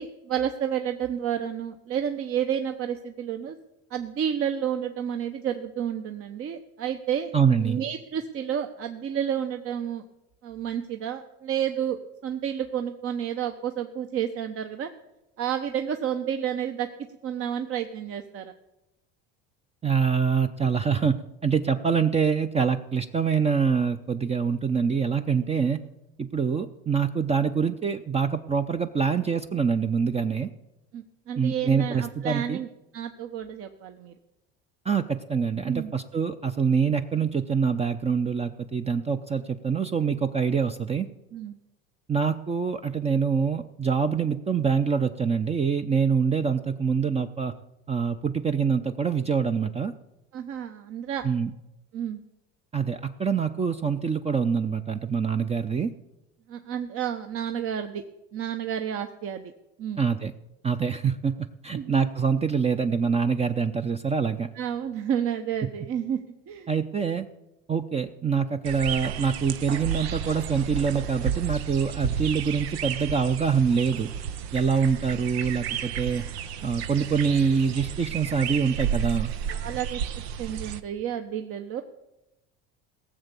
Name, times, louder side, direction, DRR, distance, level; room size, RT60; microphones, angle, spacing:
voice 1, 0.0-3.6 3.9-7.3 7.6-10.0 10.4-12.0 12.2-14.9 15.4-16.9 17.2-18.5 30.9-32.7 32.9-34.1 35.6-35.9 41.3-41.5 50.3-51.2 51.9-52.2 56.5-58.0 58.3-59.5 59.8-60.0 61.7-62.0 64.5-66.2 66.5-66.7 79.5-80.0 80.4-81.8, right 9 dB, 45° right, 6 dB, 0.9 m, -30 dB
voice 2, 7.3-7.8 19.8-25.8 26.2-30.5 31.4-32.6 34.9-41.1 42.1-47.5 47.9-49.9 51.2-51.5 52.7-55.9 60.0-60.3 60.6-64.5 66.7-67.3 67.7-74.1 74.5-76.2 76.6-79.3, right 6 dB, 20° right, 8 dB, 0.6 m, -25 dB
sound 1, 68.6-80.8, right 8 dB, 90° right, 0.8 m, -32 dB
17.0 x 7.2 x 6.9 m, 0.94 s
supercardioid pair, 95°, 31 cm